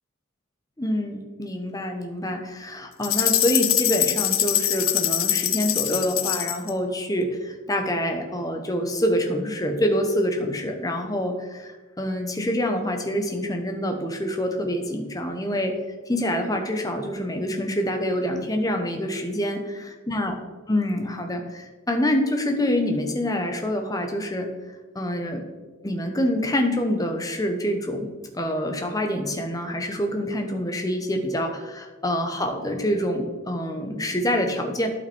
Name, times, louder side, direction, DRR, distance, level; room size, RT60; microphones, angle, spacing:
voice 1, 0.8-15.8 16.1-20.3 20.7-24.5 24.9-25.4 25.8-28.1 28.3-34.9, equal, 15° left, 4 dB, 1.0 m, -26 dB
sound 1, 3.0-6.7, left 12 dB, 75° left, 0.7 m, -23 dB
12.0 x 5.7 x 4.4 m, 1.3 s
head